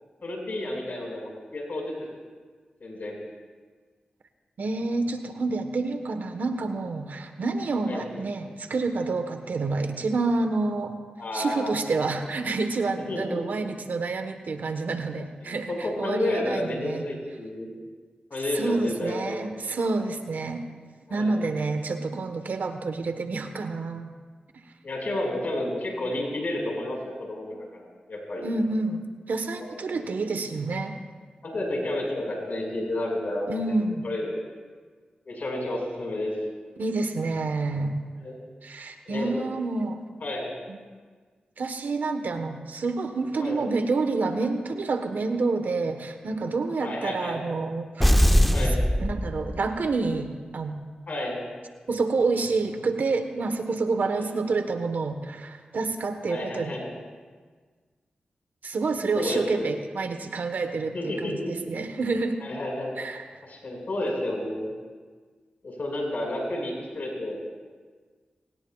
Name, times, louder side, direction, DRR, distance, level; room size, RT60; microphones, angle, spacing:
voice 1, 0.2-1.9 2.8-3.2 7.8-8.0 11.2-11.7 13.1-13.4 15.4-17.7 18.3-19.5 21.1-21.4 24.8-28.4 29.9-30.1 31.4-33.6 34.0-34.3 35.2-36.3 38.2-38.4 39.1-39.4 40.2-40.5 43.4-43.6 46.8-47.4 48.5-48.8 51.1-51.4 54.2-54.3 56.3-56.9 59.2-59.7 60.9-61.5 62.4-63.0 63.4-64.7 65.6-67.4, left 1 dB, 70° left, -1 dB, 5.4 m, -31 dB
voice 2, 4.6-11.0 11.3-17.1 18.5-20.6 21.1-24.1 28.4-29.0 29.3-31.0 33.5-34.0 36.8-38.0 38.6-40.0 40.7-40.8 41.6-48.1 49.0-50.8 51.9-56.8 58.6-62.4 63.0-63.3, right 3 dB, 75° right, 7 dB, 1.2 m, -28 dB
sound 1, 48.0-49.9, equal, 5° left, 0.9 m, -21 dB
23.5 x 18.5 x 2.4 m, 1.5 s
cardioid pair, 40°, 3 cm